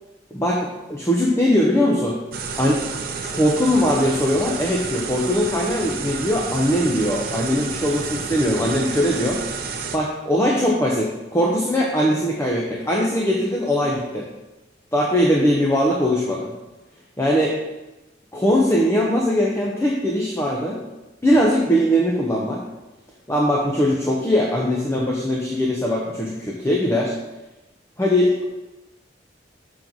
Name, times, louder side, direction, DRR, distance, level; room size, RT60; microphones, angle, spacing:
voice 1, 0.3-2.2 2.6-2.8 3.3-9.4 9.9-14.3 14.9-16.5 17.2-17.6 18.3-20.8 21.2-22.6 23.3-27.1 28.0-28.4, equal, 15° left, -2 dB, 0.8 m, -20 dB
sound 1, 2.3-10.0, right 5 dB, 55° right, 0.7 m, -30 dB
6.6 x 4.0 x 6.0 m, 1.0 s
head